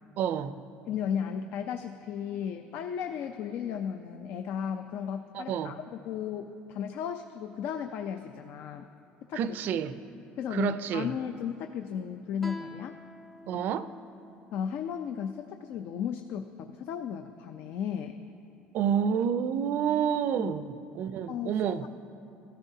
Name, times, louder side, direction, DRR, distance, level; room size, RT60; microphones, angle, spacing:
voice 1, 0.2-0.6 5.3-5.8 9.3-10.0 10.5-11.1 13.5-13.9 18.7-21.8, right 8 dB, 60° right, 0.4 m, -29 dB
voice 2, 0.9-8.9 9.3-9.5 10.4-13.0 13.5-13.6 14.5-18.1 20.4-20.6 21.3-21.9, left 8 dB, 60° left, 0.4 m, -35 dB
Guitar, 12.4-15.7, left 1 dB, 10° left, 0.6 m, -47 dB
15.0 x 13.5 x 2.7 m
cardioid pair, 115°, 4 cm